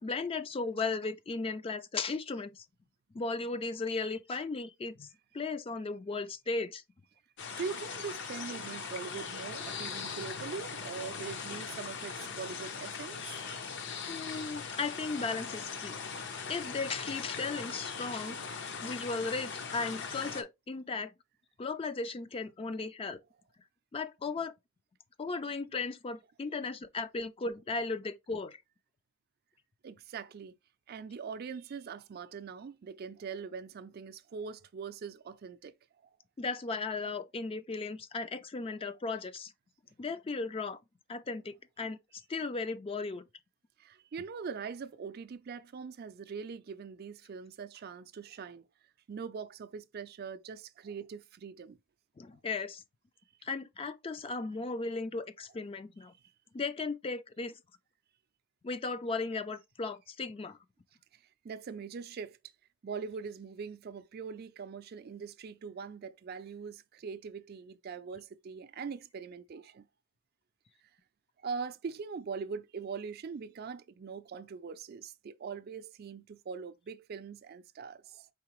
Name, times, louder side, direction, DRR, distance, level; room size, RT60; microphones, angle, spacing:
voice 1, 0.0-2.6 3.1-5.1 5.3-6.8 14.1-16.0 16.5-18.4 18.8-21.1 21.6-23.2 23.9-24.5 25.2-28.6 36.4-39.5 40.0-40.8 41.1-42.0 42.3-43.2 52.2-52.8 53.4-56.1 56.5-57.5 58.6-60.6, left 4 dB, 25° left, 0.4 m, -36 dB
sound 1, 7.4-20.4, left 5 dB, 55° left, 0.7 m, -40 dB
voice 2, 7.6-13.4 29.8-30.6 30.9-35.7 43.8-48.6 49.1-51.8 54.6-54.7 61.1-62.4 62.8-69.9 71.4-78.3, right 5 dB, 45° right, 0.4 m, -42 dB
4.7 x 3.7 x 3.0 m
head